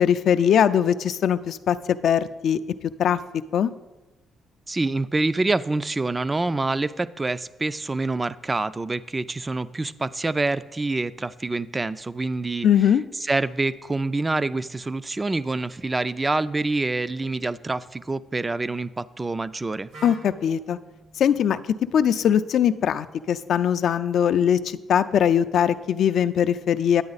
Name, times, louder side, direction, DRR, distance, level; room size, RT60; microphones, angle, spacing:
voice 1, 0.0-2.6 3.0-3.2 3.5-3.7 12.6-13.0 20.0-20.8 21.2-21.6 21.9-27.0, left 9 dB, 65° left, 12 dB, 0.4 m, -21 dB
voice 2, 4.7-12.7 13.2-19.9, right 2 dB, 20° right, 16 dB, 0.3 m, -26 dB
Wind instrument woodwind instrument, 19.9-23.8, right 3 dB, 85° right, 2.1 m, -49 dB
9.7 x 8.5 x 4.0 m, 1.1 s
cardioid pair, 90°, 0 cm